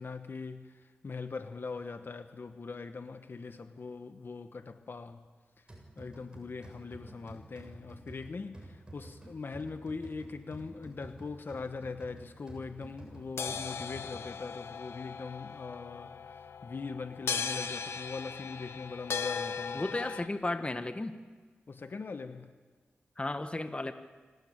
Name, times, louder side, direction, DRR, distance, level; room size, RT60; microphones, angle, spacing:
voice 1, 0.0-5.3 5.6-5.7 6.0-19.8 21.7-22.5, left 4 dB, 55° left, 8 dB, 1.3 m, -41 dB
sound 1, 5.7-14.6, right 1 dB, 20° right, 7.3 m, -51 dB
sound 2, 13.4-20.3, left 6 dB, 85° left, 1.1 m, -38 dB
voice 2, 19.7-21.2 23.2-23.9, left 2 dB, 25° left, 8 dB, 1.5 m, -34 dB
26.5 x 16.5 x 8.9 m, 1.5 s
cardioid pair, 60°, 4 cm